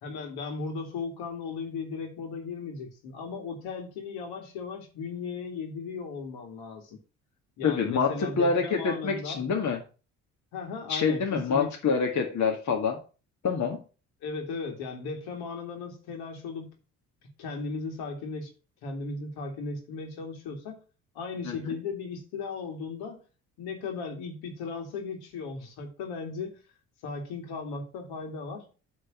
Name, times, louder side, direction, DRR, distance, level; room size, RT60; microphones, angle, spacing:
voice 1, 0.0-7.0 7.6-9.5 10.5-12.0 14.2-16.7 17.4-18.5 18.8-20.8 21.1-23.2 23.6-26.6 27.0-28.7, left 4 dB, 70° left, 3 dB, 2.5 m, -36 dB
voice 2, 7.6-9.8 10.9-13.0 13.4-13.8 21.5-21.6, left 5 dB, 45° left, 1 dB, 1.9 m, -26 dB
8.4 x 4.1 x 6.1 m, 0.35 s
hypercardioid pair, 55°, 40 cm